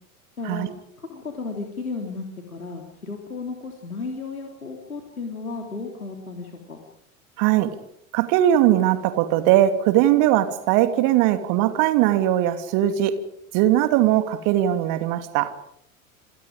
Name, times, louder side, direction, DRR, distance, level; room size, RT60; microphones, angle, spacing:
voice 1, 0.4-0.7 1.0-6.8 11.0-11.1, left 4 dB, 85° left, 1 dB, 3.4 m, -34 dB
voice 2, 7.4-7.7 8.1-13.1 13.5-15.5, right 13 dB, 45° right, 9 dB, 2.9 m, -20 dB
28.5 x 26.5 x 5.1 m, 0.71 s
figure-of-eight pair, 80°, 42 cm